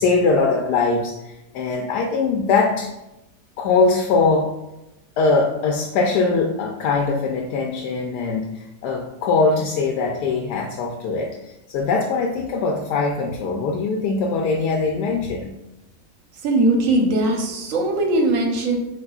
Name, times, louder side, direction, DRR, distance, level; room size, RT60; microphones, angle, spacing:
voice 1, 0.0-2.9 3.6-4.5 5.2-15.5, left 4 dB, 90° left, 1 dB, 1.2 m, -21 dB
voice 2, 16.4-18.8, right 2 dB, 60° right, 2 dB, 1.1 m, -20 dB
7.7 x 2.9 x 2.3 m, 0.94 s
omnidirectional pair, 1.7 m